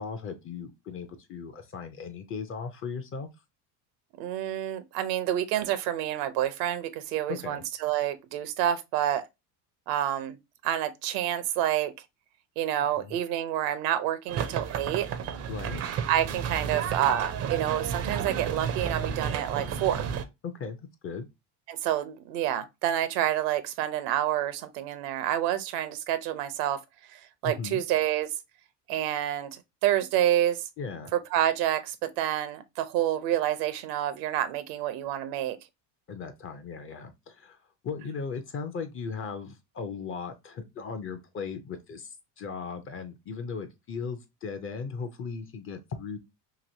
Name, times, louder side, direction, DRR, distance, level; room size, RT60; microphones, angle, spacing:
voice 1, 0.0-3.3 7.4-7.6 13.0-13.2 15.5-15.8 20.4-20.8 21.0-21.3 27.4-27.8 30.8-31.1 36.1-37.6 37.8-46.2, left 5 dB, 30° left, 0.4 m, -37 dB
voice 2, 4.2-9.2 9.9-10.4 10.6-11.9 12.6-15.1 16.1-20.0 21.7-26.8 27.1-28.3 28.9-30.7 31.1-35.6, right 12 dB, 85° right, 0.7 m, -28 dB
sound 1, 14.3-20.2, right 7 dB, 35° right, 0.4 m, -32 dB
3.0 x 2.7 x 2.6 m
supercardioid pair, 110°, 47 cm